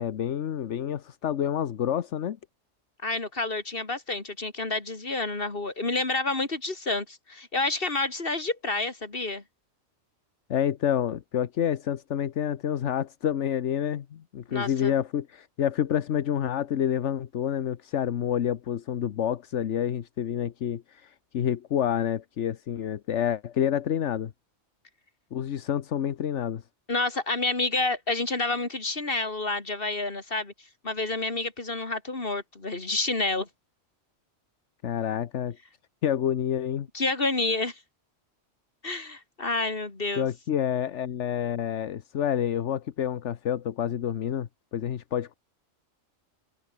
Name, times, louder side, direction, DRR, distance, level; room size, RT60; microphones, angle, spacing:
voice 1, 0.0-2.4 10.5-24.3 25.3-26.6 34.8-35.6 36.0-36.9 40.2-45.3, left 9 dB, 80° left, 1.2 m, -28 dB
voice 2, 3.0-9.4 14.5-14.9 26.9-30.5 30.8-33.5 36.9-37.8 38.8-40.3, left 3 dB, 50° left, 3.3 m, -29 dB
omnidirectional pair, 1.2 m